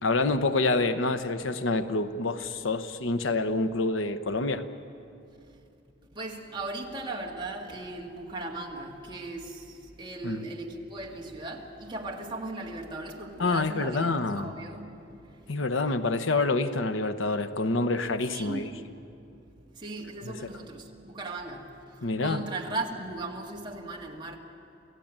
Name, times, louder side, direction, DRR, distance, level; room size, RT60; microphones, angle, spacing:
voice 1, 0.0-4.6 10.2-10.4 13.4-14.5 15.5-18.7 20.2-20.4 22.0-22.4, left 3 dB, 90° left, 10 dB, 1.0 m, -27 dB
voice 2, 6.1-15.5 18.3-19.0 19.3-24.4, right 2 dB, 25° right, 0 dB, 2.1 m, -38 dB
28.5 x 16.5 x 8.9 m, 2.7 s
head